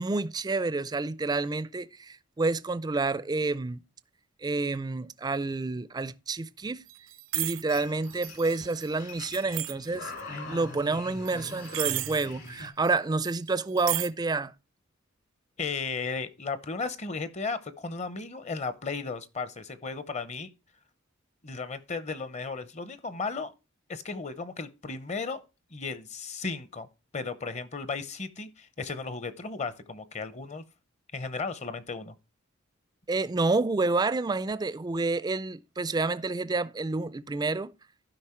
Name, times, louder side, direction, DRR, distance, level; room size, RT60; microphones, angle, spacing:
voice 1, 0.0-3.8 4.4-6.8 7.3-14.5 33.1-37.7, right 3 dB, 20° right, 0.4 m, -29 dB
sound 1, 6.9-7.7 8.0-10.2 11.2-12.6 12.8-12.9 13.2-14.1, right 17 dB, 70° right, 0.5 m, -34 dB
sound 2, 7.7-12.7, left 3 dB, 60° left, 2.4 m, -43 dB
voice 2, 15.6-20.5 21.4-23.5 23.9-25.4 25.7-26.9 27.1-30.6 31.1-32.1, left 4 dB, 35° left, 0.7 m, -35 dB
12.0 x 5.2 x 4.4 m
head